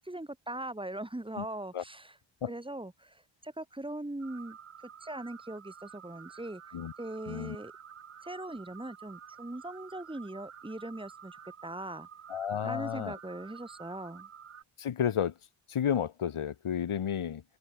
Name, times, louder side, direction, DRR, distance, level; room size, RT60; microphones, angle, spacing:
voice 1, 0.0-2.1 2.5-4.6 5.0-6.6 7.0-7.7 8.2-12.1 12.6-14.3, right 1 dB, 10° right, 2.8 m, -40 dB
sound 1, 4.2-14.6, right 8 dB, 90° right, 4.9 m, -50 dB
voice 2, 12.3-13.2 14.8-15.3 15.7-17.4, left 8 dB, 75° left, 2.4 m, -31 dB
wide cardioid pair, 170°, 50 cm